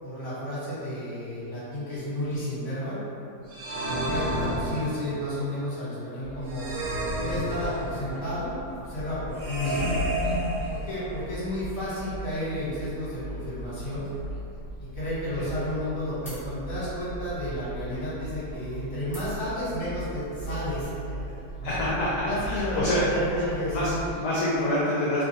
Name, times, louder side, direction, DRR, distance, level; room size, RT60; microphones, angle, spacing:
voice 1, 0.0-3.0 3.7-6.7 7.1-9.9 10.7-14.1 14.8-21.2 21.6-21.8 22.2-24.0, left 1 dB, 45° left, -11 dB, 1.4 m, -32 dB
sound 1, 3.5-5.2 6.5-8.1 9.4-11.2, equal, 80° right, 1.2 m, -30 dB
sound 2, 6.2-24.2, right 1 dB, 15° left, 1.0 m, -39 dB
voice 2, 21.6-23.1 23.7-25.2, left 1 dB, 70° left, -8 dB, 1.0 m, -27 dB
3.0 x 2.3 x 2.7 m, 2.7 s
omnidirectional pair, 1.8 m